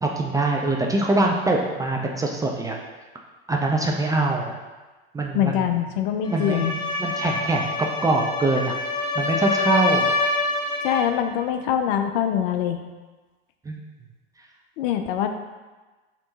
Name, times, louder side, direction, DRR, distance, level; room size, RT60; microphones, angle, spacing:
voice 1, 0.0-2.8 3.5-4.5 5.1-5.7 6.3-6.7 7.0-8.7 9.2-10.1 13.7-13.8, right 2 dB, 10° right, 0 dB, 0.4 m, -23 dB
voice 2, 5.3-6.7 10.8-12.8 14.8-15.3, left 9 dB, 60° left, 7 dB, 0.5 m, -23 dB
sound 1, 6.2-11.2, left 2 dB, 15° left, 1.1 m, -26 dB
3.4 x 2.9 x 3.9 m, 1.2 s
hypercardioid pair, 80°, 32 cm